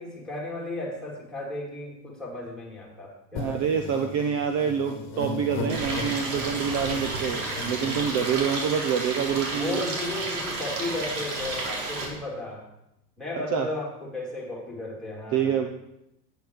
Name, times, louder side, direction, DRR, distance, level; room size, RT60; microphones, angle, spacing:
voice 1, 0.0-4.1 9.5-12.6 13.2-15.7, left 2 dB, ahead, -3 dB, 2.8 m, -34 dB
sound 1, 3.3-8.9 9.4-9.5 9.7-10.3, left 4 dB, 25° left, 1.8 m, -37 dB
voice 2, 3.3-9.8 13.3-13.7 15.3-15.7, right 7 dB, 35° right, 6 dB, 0.8 m, -27 dB
Stream, 5.7-12.0, right 2 dB, 65° right, 3.7 m, -32 dB
10.0 x 9.2 x 4.6 m, 0.84 s
supercardioid pair, 140°, 47 cm